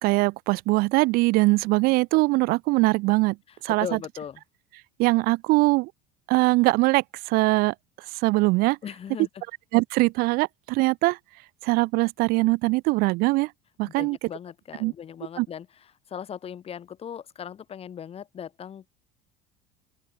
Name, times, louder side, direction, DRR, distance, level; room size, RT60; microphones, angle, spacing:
voice 1, 0.0-3.4 3.6-4.0 5.0-5.9 6.3-7.7 8.1-8.8 9.7-11.2 11.6-13.5 13.8-14.2 14.8-14.9 15.4-15.5, right 23 dB, 65° right, 0.8 m, -22 dB
voice 2, 3.5-4.4 8.8-9.3 13.8-15.7 16.1-18.9, left 8 dB, 35° left, 2.5 m, -38 dB
open air
supercardioid pair, 100°, 17 cm